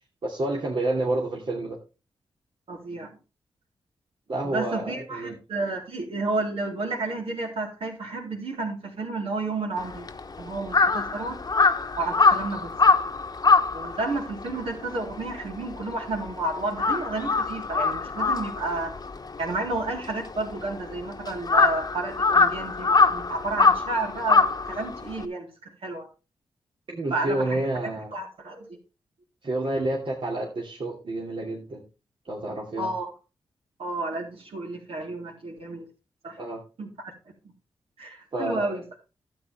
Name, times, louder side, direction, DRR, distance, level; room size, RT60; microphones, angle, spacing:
voice 1, 0.2-1.8 4.3-5.4 26.9-28.1 29.4-31.8 32.2-32.9 36.4-36.6 38.3-38.8, right 2 dB, 55° right, -3 dB, 2.5 m, -29 dB
voice 2, 2.7-3.1 4.4-10.1 10.4-11.4 12.0-12.7 13.7-18.9 19.4-26.1 27.1-27.6 28.1-28.8 32.8-33.1 33.8-35.9 36.2-36.4 36.8-37.1 38.0-38.8, right 2 dB, 70° right, 0 dB, 3.8 m, -31 dB
Crow, 9.8-16.3 16.6-25.2, left 4 dB, 40° left, 1.1 m, -23 dB
12.0 x 8.5 x 3.5 m, 0.31 s
cardioid pair, 55°, 10 cm